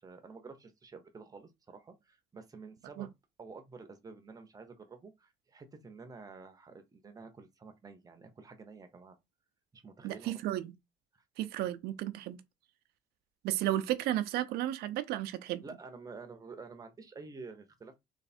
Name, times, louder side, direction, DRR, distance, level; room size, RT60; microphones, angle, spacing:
voice 1, 0.0-3.1 3.4-9.2 9.7-10.3 11.1-11.2 15.6-18.0, right 4 dB, 20° right, 0.9 m, -50 dB
voice 2, 10.0-10.7 11.4-12.4 13.4-15.6, right 13 dB, 80° right, 0.6 m, -33 dB
3.4 x 3.2 x 4.3 m
cardioid pair, 145°, 16 cm